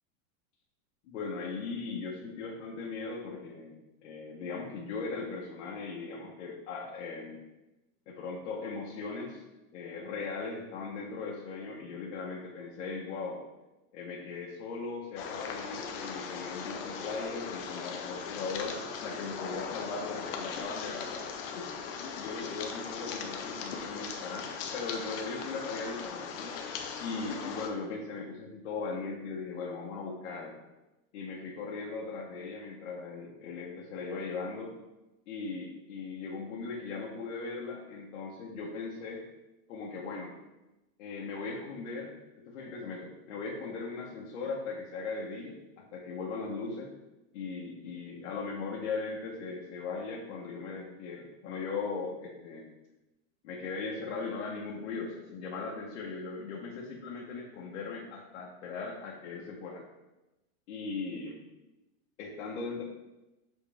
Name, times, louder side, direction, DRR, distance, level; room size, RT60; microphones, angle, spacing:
voice 1, 1.0-7.4 8.1-9.4 9.7-13.4 13.9-21.3 21.5-21.7 22.0-26.5 27.0-30.6 31.1-34.7 35.3-39.2 39.7-40.3 41.0-42.2 42.4-45.6 45.9-46.9 47.3-52.7 53.4-59.8 60.7-61.3 62.2-62.8, left 4 dB, 60° left, -4 dB, 1.2 m, -38 dB
sound 1, 15.2-27.7, left 6 dB, 45° left, 0.7 m, -39 dB
7.4 x 4.0 x 3.5 m, 1.0 s
supercardioid pair, 175°, 42 cm